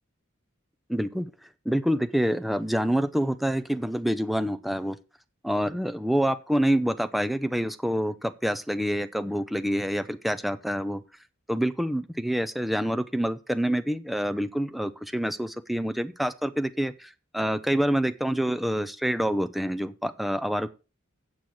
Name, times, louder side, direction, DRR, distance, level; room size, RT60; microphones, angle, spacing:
voice 1, 0.9-1.3 1.7-5.0 5.4-11.0 11.5-20.7, equal, ahead, 11 dB, 0.6 m, -27 dB
8.7 x 6.1 x 6.3 m, 0.31 s
head